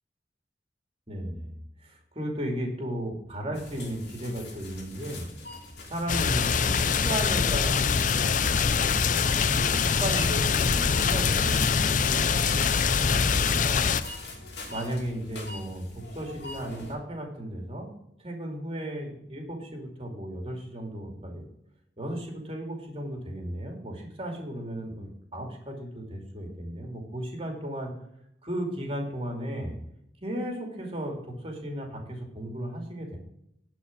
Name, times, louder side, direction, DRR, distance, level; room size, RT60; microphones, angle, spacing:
voice 1, 1.1-1.5 1.8-5.3 5.9-13.9 14.7-17.9 18.2-21.4 22.0-27.9 28.4-29.7 30.2-33.2, right 1 dB, 30° right, 2 dB, 2.6 m, -35 dB
sound 1, 3.5-16.9, left 2 dB, 65° left, 2.8 m, -42 dB
sound 2, 6.1-14.0, left 6 dB, 45° left, 0.5 m, -24 dB
11.0 x 5.0 x 8.4 m, 0.75 s
head